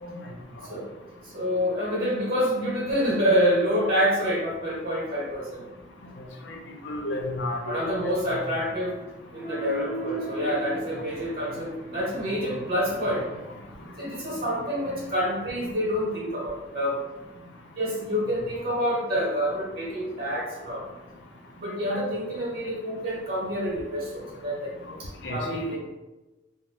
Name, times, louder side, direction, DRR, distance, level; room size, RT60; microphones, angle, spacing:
voice 1, 1.2-5.6 7.6-8.9 9.3-13.5 14.0-17.0 17.7-20.9 21.6-24.7 25.0-25.8, equal, 50° right, -5 dB, 0.9 m, -27 dB
voice 2, 6.2-6.6 6.8-7.9 8.3-8.4 14.8-14.9 24.9-25.0 25.2-25.8, left 1 dB, 65° left, 1 dB, 0.5 m, -33 dB
2.5 x 2.0 x 3.1 m, 1.1 s
head